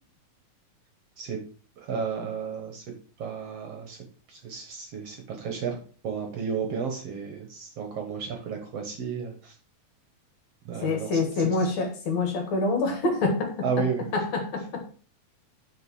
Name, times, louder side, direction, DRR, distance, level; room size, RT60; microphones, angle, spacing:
voice 1, 1.8-2.8 3.2-4.0 4.3-5.8 6.0-9.6 10.7-11.7 13.6-14.1, right 6 dB, 60° right, 1.9 m, -33 dB
voice 2, 10.8-13.9 14.1-14.9, left 3 dB, 60° left, 2.7 m, -26 dB
6.6 x 5.2 x 6.1 m
omnidirectional pair, 3.8 m